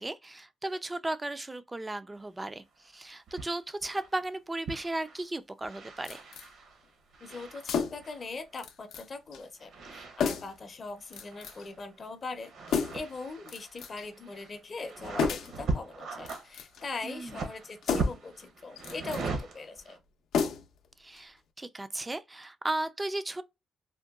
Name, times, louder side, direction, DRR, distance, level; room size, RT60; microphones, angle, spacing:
voice 1, 0.0-2.6 2.9-6.2 17.0-17.4 21.0-23.4, right 2 dB, 15° right, 0.3 m, -35 dB
sound 1, 3.3-3.5 3.8-4.3 4.7-5.3 5.6-8.3 9.6-10.6 11.0-11.9 12.2-20.0, right 3 dB, 60° right, 0.8 m, -39 dB
sound 2, 6.0-6.5 7.6-8.1 8.6-9.1 9.3-9.4 10.2-10.6 11.1-11.7 12.7-13.1 13.5-14.1 15.2-15.6 16.2-16.9 17.8-18.3 18.8-19.2 20.3-20.9 21.2-21.3, left 6 dB, 75° left, 0.5 m, -32 dB
voice 2, 7.2-12.5 12.9-20.0, left 3 dB, 35° left, 0.6 m, -41 dB
3.7 x 2.2 x 2.2 m
cardioid pair, 115°, 0 cm